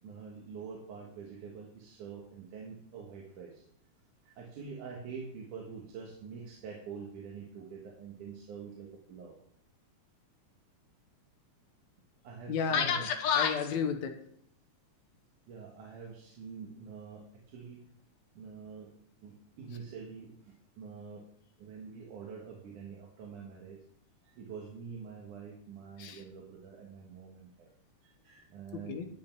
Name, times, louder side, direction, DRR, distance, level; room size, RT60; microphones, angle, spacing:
voice 1, 0.0-3.6 4.2-9.4 12.2-13.1 15.5-17.8 18.3-18.9 19.2-21.2 21.6-23.8 24.2-27.7 28.0-29.0, right 5 dB, 85° right, 0 dB, 3.0 m, -46 dB
voice 2, 12.5-14.2 26.0-26.2 28.9-29.1, left 7 dB, 70° left, 5 dB, 2.3 m, -30 dB
11.5 x 9.3 x 4.5 m, 0.68 s
omnidirectional pair, 3.5 m